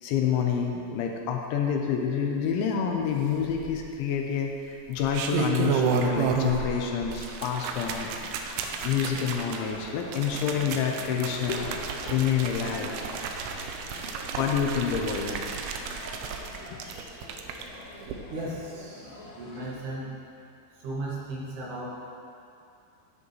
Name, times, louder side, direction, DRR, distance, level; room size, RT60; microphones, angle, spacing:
voice 1, 0.0-8.1 8.8-11.7 12.1-12.9 14.4-15.4 16.7-16.8, left 7 dB, 80° left, 2 dB, 3.0 m, -28 dB
sound 1, 3.4-4.1 4.9-6.7 7.0-17.6 18.0-18.1, right 6 dB, 85° right, 3.0 m, -32 dB
sound 2, 5.8-19.7, left 1 dB, 65° left, 3.5 m, -45 dB
sound 3, 9.4-15.4, right 2 dB, 35° right, 2.9 m, -47 dB
voice 2, 18.3-20.1 20.8-21.9, right 1 dB, 65° right, -6 dB, 3.7 m, -36 dB
14.0 x 10.5 x 3.2 m, 2.5 s
omnidirectional pair, 5.5 m